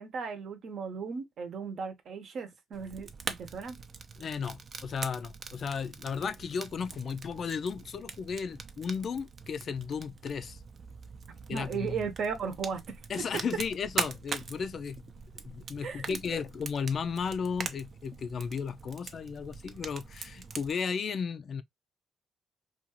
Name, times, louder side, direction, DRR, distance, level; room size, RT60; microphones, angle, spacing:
voice 1, 0.0-3.8 11.5-13.0 15.8-16.4, right 6 dB, 65° right, 0.8 m, -36 dB
Fire, 2.7-20.7, right 5 dB, 50° right, 0.5 m, -42 dB
voice 2, 4.2-10.6 11.5-12.0 13.1-15.1 15.4-21.6, left 6 dB, 50° left, 0.4 m, -34 dB
2.5 x 2.4 x 2.9 m
cardioid pair, 90°, 0 cm